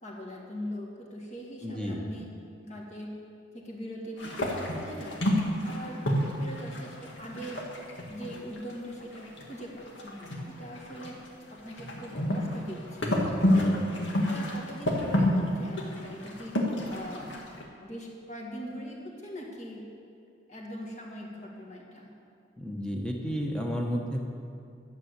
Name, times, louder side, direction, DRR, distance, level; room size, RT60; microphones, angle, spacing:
voice 1, 0.0-2.3 2.6-3.1 3.5-4.5 4.7-6.0 6.4-7.6 8.1-11.2 11.5-13.1 13.5-13.8 14.1-16.6 16.9-17.3 17.8-19.9 20.5-22.1, equal, 35° left, -2 dB, 2.1 m, -41 dB
voice 2, 1.6-2.1 13.5-13.8 22.6-24.3, equal, 5° left, 0 dB, 1.2 m, -32 dB
sound 1, 4.2-8.7 9.0-11.3 11.5-17.6, left 1 dB, 70° left, 1.9 m, -29 dB
12.5 x 7.3 x 8.3 m, 2.4 s
head